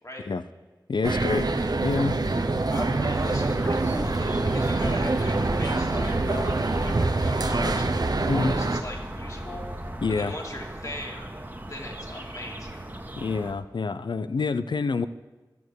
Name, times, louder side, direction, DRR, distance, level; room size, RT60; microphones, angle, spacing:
voice 1, 0.9-1.5 1.8-2.2 8.3-8.5 10.0-10.3 13.2-15.1, left 4 dB, 85° left, 13 dB, 0.5 m, -27 dB
sound 1, 1.0-8.8, right 2 dB, 60° right, 0.8 m, -25 dB
voice 2, 2.7-7.9 8.2-9.7 10.1-11.3 11.7-12.8, left 1 dB, 45° left, -1 dB, 2.9 m, -39 dB
sound 2, 2.9-13.5, right 1 dB, 25° right, 1.4 m, -37 dB
sound 3, 5.2-10.2, equal, 5° left, 1.6 m, -39 dB
12.5 x 7.1 x 8.1 m, 1.2 s
wide cardioid pair, 45°, 8 cm